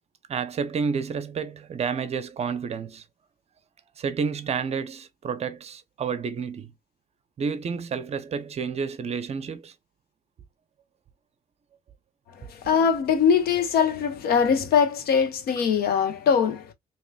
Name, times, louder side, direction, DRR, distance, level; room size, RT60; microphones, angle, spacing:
voice 1, 0.3-3.0 4.0-6.7 7.4-9.7, right 6 dB, 40° right, 0.7 m, -30 dB
voice 2, 12.6-16.7, left 7 dB, 65° left, 1.1 m, -22 dB
4.7 x 3.0 x 2.3 m
cardioid pair, 110°, 17 cm